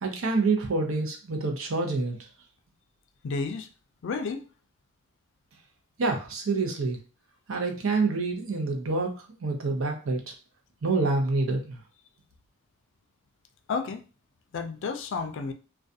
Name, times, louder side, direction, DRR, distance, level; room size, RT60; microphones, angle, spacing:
voice 1, 0.0-2.2 6.0-7.0 7.5-9.1 9.4-10.2 10.8-11.8, right 3 dB, 70° right, 0.6 m, -27 dB
voice 2, 3.2-3.7 4.0-4.5 13.7-14.0 14.5-15.5, left 4 dB, 65° left, 0.4 m, -31 dB
2.4 x 2.2 x 2.6 m
head